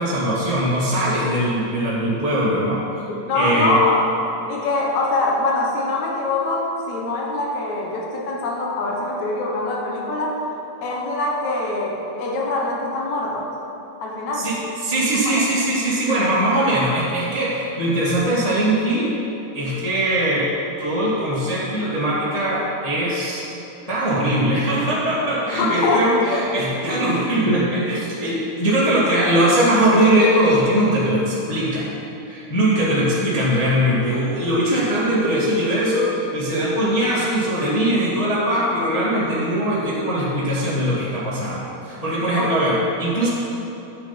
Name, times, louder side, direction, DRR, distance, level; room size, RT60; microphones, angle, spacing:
voice 1, 0.0-2.8 3.3-3.8 14.4-14.6 14.8-19.1 19.5-20.5 20.8-23.4 23.9-32.0 32.2-43.3, right 1 dB, 40° left, -8 dB, 0.5 m, -21 dB
voice 2, 3.1-4.1 4.5-10.5 10.8-13.5 14.0-14.5 15.4-15.5 25.6-26.4 42.4-42.5, left 2 dB, 65° left, 0 dB, 2.2 m, -23 dB
9.9 x 7.3 x 5.8 m, 3.0 s
omnidirectional pair, 4.0 m